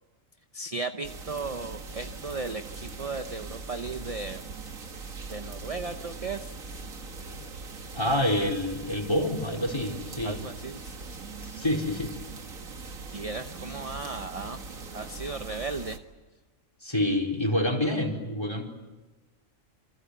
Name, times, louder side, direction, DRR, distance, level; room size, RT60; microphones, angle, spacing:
voice 1, 0.5-4.4 5.3-6.5 10.2-10.9 13.1-14.6 14.9-16.0, right 3 dB, 30° right, 8 dB, 0.9 m, -35 dB
sound 1, 1.0-16.0, right 4 dB, 75° right, 2.1 m, -41 dB
voice 2, 7.9-10.4 11.4-12.1 16.8-18.6, left 1 dB, 20° left, 4 dB, 4.6 m, -27 dB
28.0 x 25.0 x 8.3 m, 1.2 s
omnidirectional pair, 1.4 m